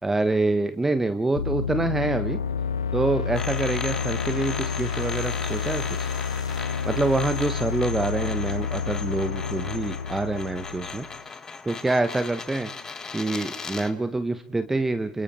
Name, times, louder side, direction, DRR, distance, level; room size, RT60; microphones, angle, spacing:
voice 1, 0.0-2.4 2.9-6.1 6.8-11.4 11.7-12.7 13.1-15.2, right 2 dB, 10° right, 10 dB, 1.2 m, -26 dB
sound 1, 1.4-11.2, left 6 dB, 80° left, 0.9 m, -29 dB
sound 2, 3.3-14.0, left 5 dB, 20° left, 1.5 m, -37 dB
28.0 x 27.0 x 4.4 m, 0.71 s
figure-of-eight pair, 80°, 3 cm